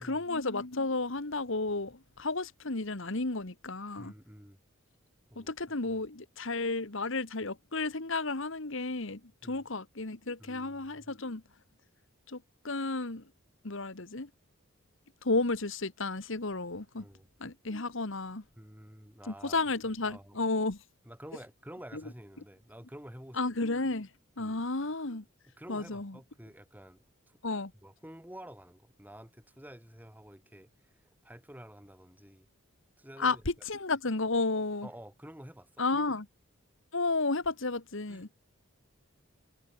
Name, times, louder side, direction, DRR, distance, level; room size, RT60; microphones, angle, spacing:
voice 1, 0.0-4.1 5.3-11.4 12.3-13.2 13.6-14.3 15.2-17.0 17.4-18.4 19.3-20.8 23.4-24.1 24.4-25.2 25.7-26.1 27.4-27.7 33.2-33.4 33.6-34.9 35.8-36.2 36.9-38.3, left 3 dB, 60° left, 1.5 m, -32 dB
voice 2, 4.0-4.6 5.3-6.0 9.4-9.7 10.4-11.1 17.0-17.3 18.6-19.6 19.9-20.4 21.0-23.4 24.4-24.6 25.6-27.4 27.8-32.5 33.0-33.7 34.8-35.8 38.1-38.3, equal, 10° right, 5.0 m, -50 dB
head